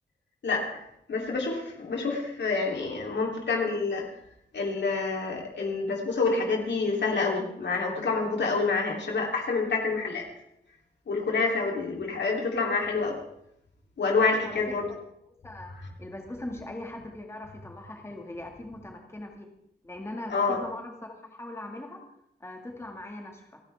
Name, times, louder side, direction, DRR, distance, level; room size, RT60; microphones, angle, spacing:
voice 1, 0.4-0.8 1.1-4.0 4.5-10.3 11.1-13.2 14.0-14.9 20.3-20.6, left 4 dB, 90° left, 0 dB, 3.3 m, -27 dB
voice 2, 14.4-15.0 15.4-15.7 16.0-19.5 19.8-22.0 22.4-23.6, left 1 dB, 15° left, 2 dB, 2.0 m, -40 dB
29.5 x 10.0 x 3.6 m, 0.77 s
wide cardioid pair, 170°, 18 cm